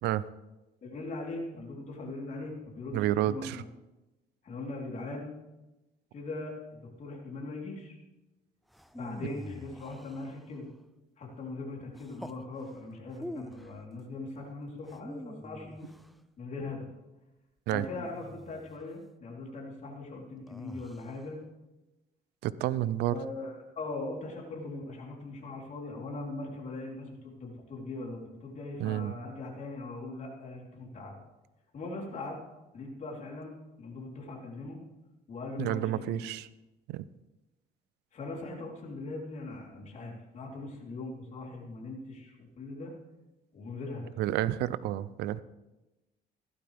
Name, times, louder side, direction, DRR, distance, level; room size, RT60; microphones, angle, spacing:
voice 1, 0.8-3.6 4.4-5.3 6.1-8.0 8.9-10.7 11.2-15.9 16.4-16.9 17.7-21.4 23.1-31.1 31.7-32.4 32.7-34.8 35.3-36.3 38.1-42.9 43.5-44.1, left 2 dB, 45° left, -2 dB, 3.7 m, -40 dB
voice 2, 2.9-3.6 17.7-17.9 22.4-23.1 28.8-29.1 35.6-36.5 36.9-37.0 44.2-45.4, right 13 dB, 80° right, 17 dB, 0.5 m, -30 dB
sound 1, 8.7-10.7 11.9-12.4 13.1-13.8 14.8-16.2 17.7-18.9 20.5-21.2, equal, ahead, 0.5 m, -46 dB
15.5 x 12.0 x 3.5 m, 1.0 s
cardioid pair, 110°, 17 cm